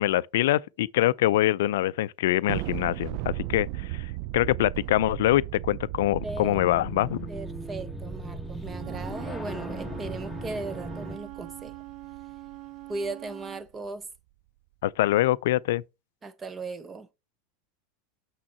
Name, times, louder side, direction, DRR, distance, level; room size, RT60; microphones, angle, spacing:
voice 1, 0.0-7.3 14.8-15.8, left 15 dB, 70° left, 0.4 m, -24 dB
Thunder, 2.5-13.1, right 18 dB, 55° right, 0.3 m, -37 dB
sound 1, 6.1-11.2, equal, 5° left, 1.2 m, -38 dB
voice 2, 6.2-6.6 7.3-11.7 12.9-14.1 16.2-17.1, right 3 dB, 20° right, 0.9 m, -37 dB
Wind instrument woodwind instrument, 8.6-13.6, right 18 dB, 40° right, 1.1 m, -43 dB
6.3 x 6.1 x 4.1 m
hypercardioid pair, 95°, 0 cm